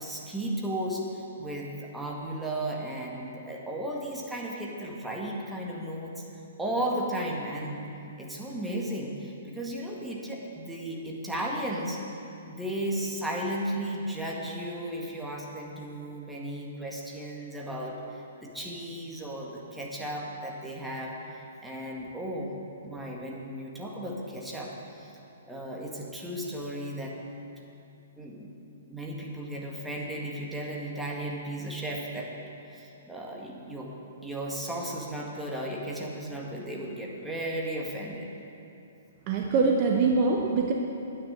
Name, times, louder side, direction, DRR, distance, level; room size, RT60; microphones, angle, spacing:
voice 1, 0.0-6.2 6.6-7.9 8.2-12.0 12.5-25.2 25.5-27.2 28.2-32.3 32.6-33.9 34.2-38.3, right 1 dB, 5° right, -3 dB, 1.9 m, -35 dB
voice 2, 39.3-40.7, right 4 dB, 35° right, 1 dB, 1.1 m, -23 dB
9.9 x 9.6 x 7.8 m, 2.8 s
figure-of-eight pair, 120°, 0 cm